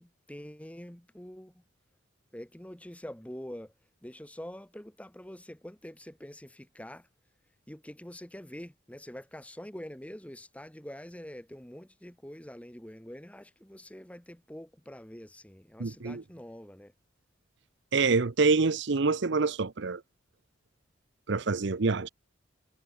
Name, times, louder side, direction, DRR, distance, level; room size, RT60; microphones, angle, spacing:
voice 1, 0.0-1.6 2.3-3.7 4.0-7.1 7.7-16.9, equal, 5° left, 1.4 m, -45 dB
voice 2, 15.8-16.2 17.9-20.0 21.3-22.1, right 4 dB, 60° right, 0.7 m, -26 dB
head